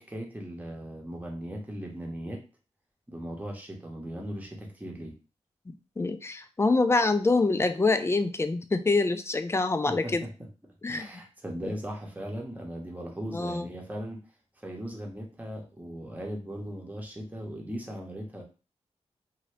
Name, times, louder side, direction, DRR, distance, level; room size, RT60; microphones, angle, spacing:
voice 1, 0.0-2.4 3.1-5.2 9.9-10.1 10.9-14.2 14.6-18.4, equal, 15° right, 0 dB, 0.9 m, -38 dB
voice 2, 6.0-10.2 10.8-11.1 11.6-11.7 13.3-13.7, left 3 dB, 20° left, 9 dB, 0.4 m, -25 dB
2.7 x 2.7 x 3.2 m, 0.32 s
wide cardioid pair, 90°, 12 cm